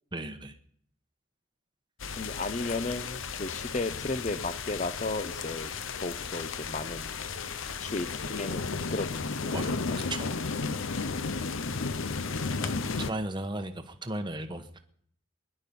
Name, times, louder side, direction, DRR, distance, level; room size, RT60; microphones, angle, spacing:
voice 1, 0.1-0.6 9.5-9.8 10.1-10.4 12.6-14.8, right 1 dB, 20° right, 7 dB, 1.0 m, -36 dB
sound 1, 2.0-13.1, left 4 dB, 65° left, 0.8 m, -34 dB
voice 2, 2.2-5.7 6.0-7.2 7.8-8.6 8.9-9.6 9.9-10.2, left 2 dB, 35° left, 13 dB, 0.7 m, -34 dB
21.5 x 11.0 x 5.4 m, 0.66 s
head